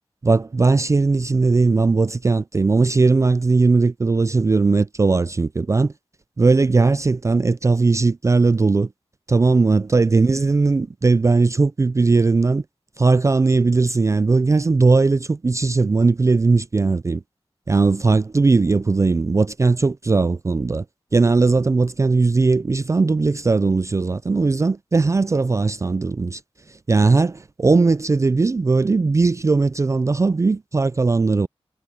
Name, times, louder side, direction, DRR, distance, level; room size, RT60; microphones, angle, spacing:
voice 1, 0.2-5.9 6.4-8.9 9.3-12.6 13.0-17.2 17.7-20.8 21.1-26.4 26.9-31.5, right 3 dB, 30° right, 0.4 m, -18 dB
wide cardioid pair, 115°, 10 cm